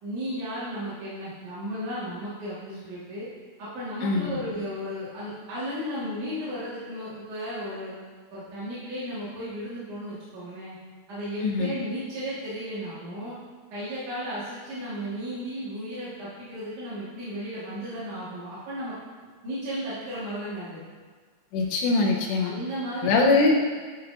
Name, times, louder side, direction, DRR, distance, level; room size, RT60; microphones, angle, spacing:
voice 1, 0.0-3.3 3.6-8.0 8.3-10.8 11.1-13.4 13.7-18.9 19.4-20.8 22.4-23.3, equal, 60° right, -11 dB, 2.1 m, -34 dB
voice 2, 4.0-4.4 11.4-11.7 21.5-22.5 23.0-23.6, left 3 dB, 80° left, -1 dB, 2.7 m, -22 dB
10.5 x 5.9 x 2.5 m, 1.5 s
omnidirectional pair, 5.8 m